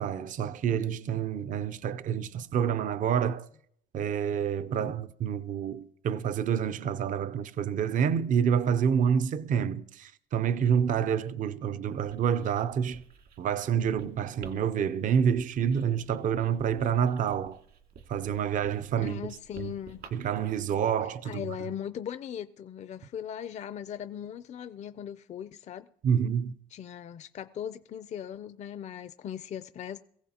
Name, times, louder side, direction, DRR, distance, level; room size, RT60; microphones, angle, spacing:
voice 1, 0.0-3.5 3.9-13.0 13.4-17.6 18.1-19.3 19.6-19.7 20.1-21.4 26.0-26.5, right 8 dB, 55° right, 0.5 m, -28 dB
Writing, 11.9-20.5, right 6 dB, 70° right, 2.2 m, -52 dB
voice 2, 19.0-20.1 21.2-25.9 26.7-30.0, left 9 dB, 45° left, 0.4 m, -39 dB
22.5 x 15.5 x 2.8 m
cardioid pair, 120°, 16 cm